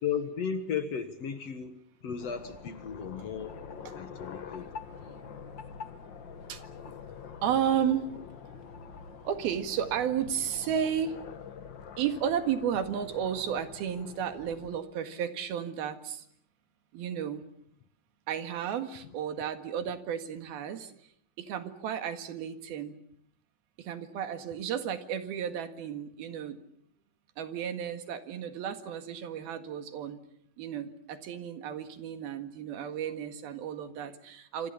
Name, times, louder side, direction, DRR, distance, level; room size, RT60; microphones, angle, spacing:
voice 1, 0.0-3.6 4.0-4.7, left 7 dB, 55° left, 9 dB, 2.2 m, -35 dB
sound 1, 2.2-14.8, left 6 dB, 80° left, 1.0 m, -46 dB
voice 2, 5.1-5.5 6.5-6.9 7.4-8.2 9.3-11.2 12.0-16.2 16.9-17.5 18.3-20.9 21.4-23.0 23.8-26.6 27.4-30.2 30.6-34.7, right 8 dB, 90° right, 8 dB, 3.8 m, -33 dB
27.0 x 26.5 x 7.0 m, 0.69 s
omnidirectional pair, 4.2 m